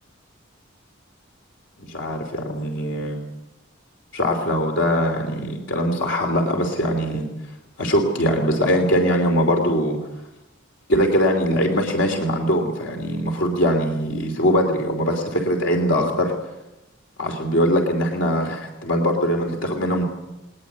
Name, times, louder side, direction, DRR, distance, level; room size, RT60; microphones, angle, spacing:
voice 1, 1.8-3.2 4.1-7.3 7.8-10.0 10.9-16.3 17.2-20.0, equal, 70° left, 3 dB, 3.1 m, -21 dB
21.0 x 20.0 x 8.3 m, 0.98 s
head